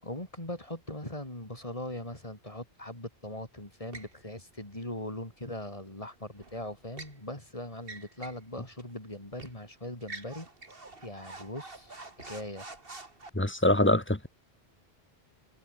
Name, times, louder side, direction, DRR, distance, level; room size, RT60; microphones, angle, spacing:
voice 1, 0.0-10.5 11.0-12.7, left 1 dB, 30° left, 5.3 m, -40 dB
sound 1, 3.9-4.2 6.4-7.2 7.8-8.4 8.8-8.9 9.4-9.6 10.0-13.3, right 3 dB, 60° right, 3.1 m, -46 dB
voice 2, 13.3-14.3, left 1 dB, 10° left, 1.5 m, -24 dB
omnidirectional pair, 1.1 m